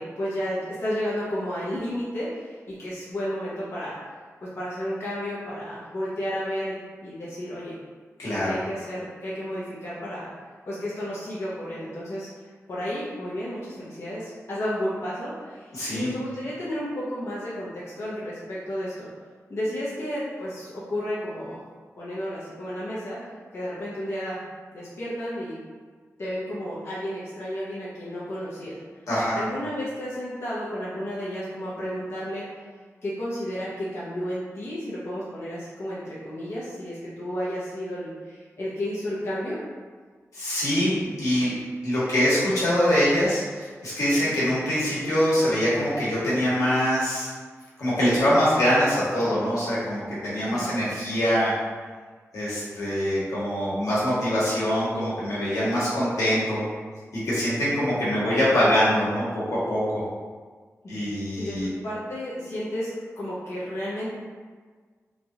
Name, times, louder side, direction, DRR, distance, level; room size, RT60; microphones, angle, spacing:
voice 1, 0.0-4.0 4.4-7.8 8.4-10.3 10.7-12.3 12.7-19.1 19.5-21.6 22.0-23.2 23.5-24.4 24.7-25.6 26.2-28.8 29.3-32.5 33.0-39.6 44.1-44.3 50.5-50.7 57.6-57.8 60.8-61.0 61.4-64.1, equal, 55° left, -9 dB, 0.7 m, -32 dB
voice 2, 8.2-8.6 15.7-16.1 29.1-29.4 40.3-41.5 41.8-47.3 47.8-51.5 52.3-56.6 57.1-60.0 60.9-61.7, equal, 85° left, -9 dB, 1.1 m, -24 dB
3.0 x 2.4 x 2.7 m, 1.5 s
wide cardioid pair, 120°, 5 cm